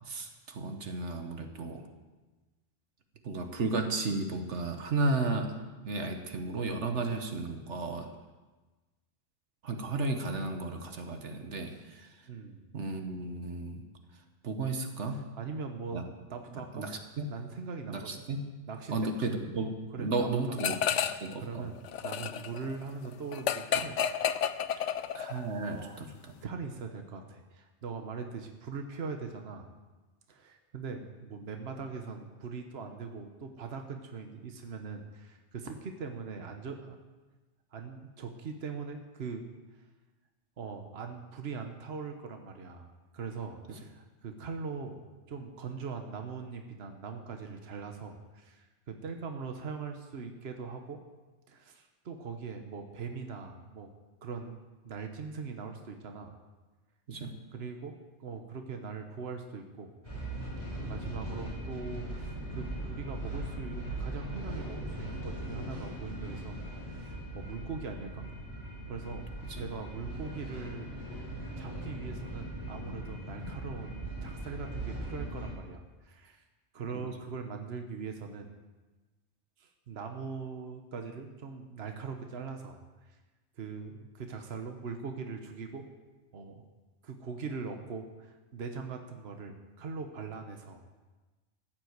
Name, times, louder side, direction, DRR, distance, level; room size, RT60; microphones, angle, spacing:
voice 1, 0.1-1.9 3.2-5.6 5.8-8.1 9.6-12.1 12.7-13.8 14.4-15.2 15.9-16.0 16.7-17.2 17.9-18.5 18.9-20.8 21.2-21.7 25.1-26.1 57.1-57.3 69.5-69.6, right 3 dB, 75° right, 5 dB, 1.5 m, -33 dB
voice 2, 12.3-12.6 15.3-16.9 17.3-18.2 18.7-19.1 19.9-21.8 22.0-24.0 24.7-24.9 25.7-26.1 26.4-29.7 30.3-37.0 37.7-39.4 40.6-51.0 51.5-53.9 54.2-54.6 54.8-56.4 57.5-59.9 60.9-66.6 66.9-68.3 68.9-69.3 69.6-71.3 71.6-76.4 76.7-78.5 79.6-83.2 83.6-85.9 86.3-86.6 87.0-90.8, right 5 dB, 60° right, 5 dB, 1.3 m, -41 dB
sound 1, 20.6-21.3 21.6-25.5, left 8 dB, 85° left, 1.0 m, -31 dB
sound 2, 60.0-75.5, right 1 dB, 25° left, 5.0 m, -39 dB
14.5 x 7.7 x 7.9 m, 1.2 s
omnidirectional pair, 1.2 m